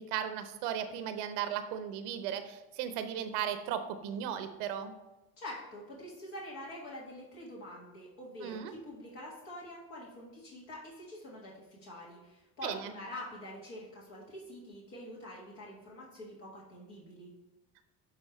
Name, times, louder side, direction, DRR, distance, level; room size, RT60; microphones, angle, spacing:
voice 1, 0.0-4.9 8.4-8.7 12.6-12.9, right 9 dB, 80° right, 10 dB, 0.7 m, -36 dB
voice 2, 5.4-17.3, left 1 dB, 80° left, -4 dB, 1.6 m, -46 dB
10.5 x 3.8 x 3.0 m, 1.0 s
hypercardioid pair, 60°, 46 cm